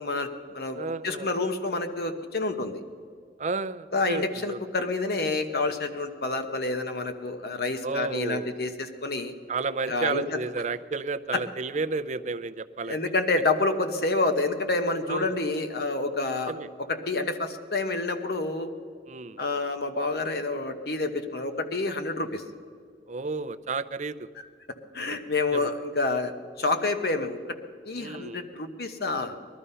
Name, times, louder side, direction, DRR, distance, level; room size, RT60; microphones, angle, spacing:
voice 1, 0.0-2.8 3.9-9.3 9.9-10.4 11.3-11.4 12.8-16.5 16.8-18.7 19.4-22.4 24.7-27.6 27.8-29.4, left 3 dB, 60° left, 8 dB, 1.1 m, -28 dB
voice 2, 0.7-1.3 3.4-4.6 7.8-8.6 9.5-13.0 15.1-15.4 16.5-16.7 19.1-19.4 23.1-24.3 25.5-25.7 28.0-28.4, right 4 dB, 40° right, 12 dB, 0.5 m, -32 dB
19.5 x 12.5 x 5.6 m, 2.1 s
head